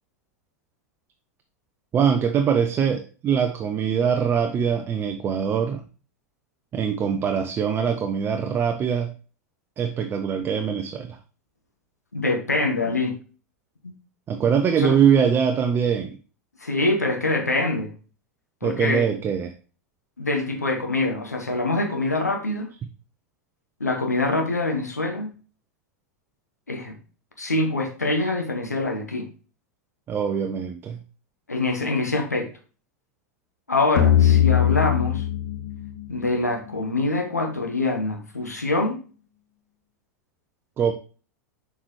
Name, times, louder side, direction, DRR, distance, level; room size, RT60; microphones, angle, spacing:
voice 1, 1.9-5.8 6.7-9.1 9.8-11.2 14.3-16.2 18.6-19.5 30.1-31.0 40.8-40.9, right 7 dB, 25° right, 7 dB, 0.6 m, -23 dB
voice 2, 12.1-13.1 13.8-13.9 14.7-15.0 16.6-17.9 18.6-19.0 20.2-22.7 23.8-25.3 26.7-26.9 27.4-29.2 31.5-32.5 33.7-35.2 36.1-39.0, left 2 dB, 90° left, 4 dB, 1.2 m, -24 dB
sound 1, 34.0-37.2, left 10 dB, 55° left, 0.7 m, -21 dB
7.3 x 4.6 x 3.1 m, 0.37 s
figure-of-eight pair, 90°, 9 cm